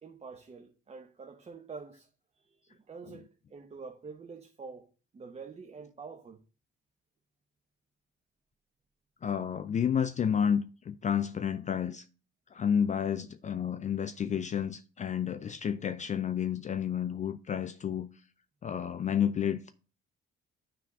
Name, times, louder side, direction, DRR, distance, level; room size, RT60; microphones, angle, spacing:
voice 1, 0.0-2.1 2.4-4.9 5.1-6.4, right 5 dB, 30° right, 0.8 m, -47 dB
voice 2, 9.2-12.1 12.5-18.1 18.6-19.7, left 8 dB, 35° left, 0.4 m, -30 dB
9.6 x 3.4 x 4.7 m
cardioid pair, 90°, 20 cm